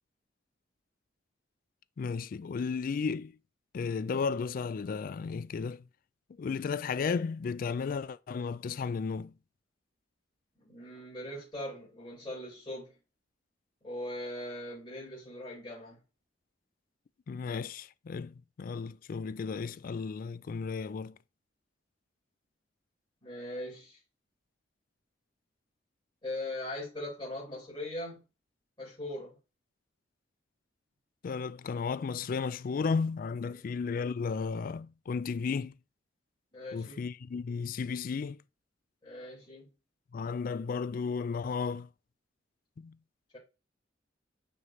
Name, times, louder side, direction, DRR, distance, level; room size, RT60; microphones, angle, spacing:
voice 1, 2.0-3.4 3.7-5.8 6.4-9.3 17.3-21.2 31.2-35.8 36.7-38.4 40.1-41.9 42.8-43.0, left 5 dB, 50° left, 0.3 m, -34 dB
voice 2, 10.6-12.9 13.8-16.0 23.2-24.0 26.2-28.2 28.8-29.3 33.5-33.7 36.5-37.0 39.0-39.7 43.3-43.4, left 1 dB, 25° left, 4.3 m, -40 dB
6.4 x 5.4 x 3.1 m
head